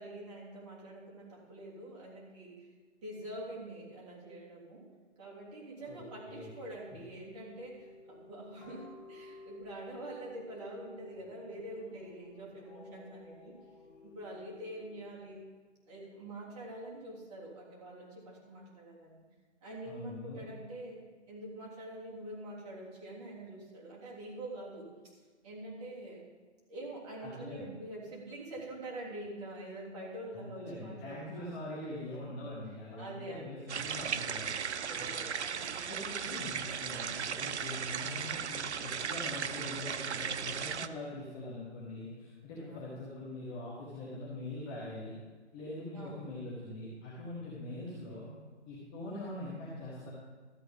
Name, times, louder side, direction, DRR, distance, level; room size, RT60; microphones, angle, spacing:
voice 1, 0.0-2.7 3.0-4.9 5.2-13.6 14.0-15.5 15.9-19.2 19.6-24.9 25.4-26.3 26.7-31.6 32.3-32.4 33.0-33.7 34.7-35.9 42.5-42.8 45.9-46.4, right 1 dB, 25° right, -5 dB, 3.2 m, -45 dB
sound 1, 5.8-15.4, left 3 dB, 35° left, 2.8 m, -54 dB
voice 2, 19.9-20.4 27.2-27.7 30.3-34.5 35.8-45.1 45.5-48.3 48.7-50.1, left 1 dB, 10° left, -7 dB, 0.8 m, -43 dB
sound 2, 33.7-40.9, right 7 dB, 70° right, 0.6 m, -36 dB
13.0 x 7.9 x 5.2 m, 1.4 s
hypercardioid pair, 160°, 36 cm